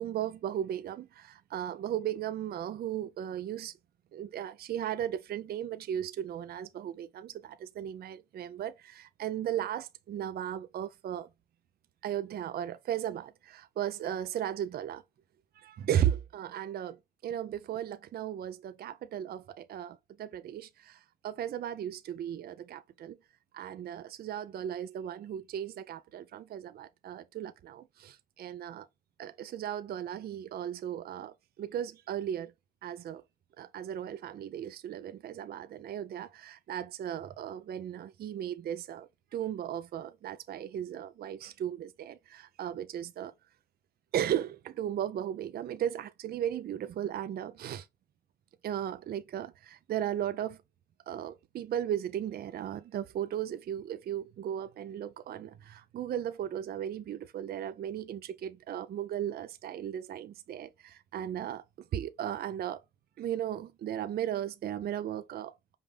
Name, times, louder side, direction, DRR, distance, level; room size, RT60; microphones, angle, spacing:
voice 1, 0.0-3.7 4.1-11.3 12.0-15.0 15.6-17.0 17.2-23.2 23.5-28.9 29.2-32.5 32.8-33.2 33.6-43.3 44.1-47.9 48.6-50.6 51.1-61.6 61.9-62.8 63.2-65.7, right 10 dB, 50° right, 0.4 m, -36 dB
5.4 x 2.5 x 3.3 m
cardioid pair, 90°, 20 cm